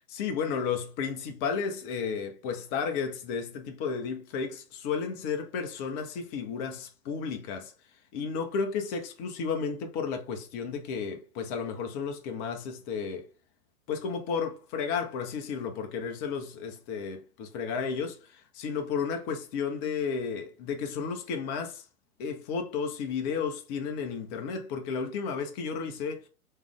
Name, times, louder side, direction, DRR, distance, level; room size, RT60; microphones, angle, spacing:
voice 1, 0.0-7.7 8.1-13.3 13.9-21.9 22.2-26.3, left 6 dB, 25° left, 0.8 m, -33 dB
3.3 x 3.2 x 3.6 m
figure-of-eight pair, 110°, 45 cm